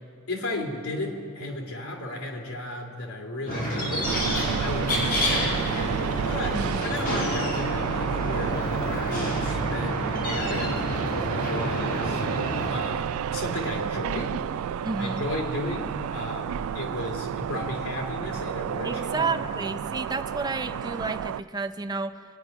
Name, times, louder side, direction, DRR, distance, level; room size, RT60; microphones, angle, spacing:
voice 1, 0.3-4.2 4.6-5.7 6.2-10.8 11.3-12.2 12.7-14.4 15.0-19.5, left 1 dB, 85° left, -1 dB, 2.8 m, -34 dB
sound 1, 3.5-12.7, equal, 40° left, 4.8 m, -29 dB
sound 2, 4.0-21.4, right 8 dB, 80° right, 0.3 m, -31 dB
voice 2, 14.8-15.2 18.8-22.2, right 3 dB, 20° right, 10 dB, 0.5 m, -31 dB
24.0 x 9.4 x 5.9 m, 2.3 s
head